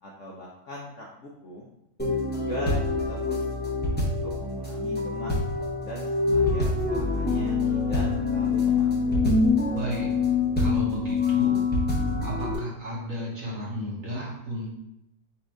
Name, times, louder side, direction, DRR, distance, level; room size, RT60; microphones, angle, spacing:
voice 1, 0.0-1.7 2.3-3.4 3.9-5.3 5.8-9.3, left 1 dB, 60° left, -4 dB, 0.8 m, -40 dB
sound 1, 2.0-12.6, left 3 dB, 15° left, 0.4 m, -25 dB
voice 2, 9.7-10.1 10.6-11.6 12.2-14.7, equal, 50° right, -4 dB, 1.3 m, -33 dB
4.2 x 2.6 x 4.6 m, 0.86 s
omnidirectional pair, 2.0 m